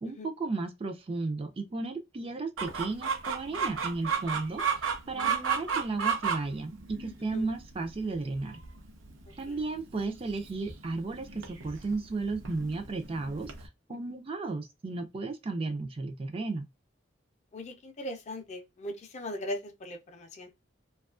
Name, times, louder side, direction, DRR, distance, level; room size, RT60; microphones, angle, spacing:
voice 1, 0.0-8.6 9.4-16.7, right 3 dB, 30° right, 0.4 m, -34 dB
Chicken rooster, 2.6-13.7, right 6 dB, 80° right, 0.6 m, -34 dB
voice 2, 5.2-5.9 7.3-7.5 9.3-9.6 17.5-20.5, left 1 dB, 35° left, 0.5 m, -40 dB
2.7 x 2.3 x 2.4 m
head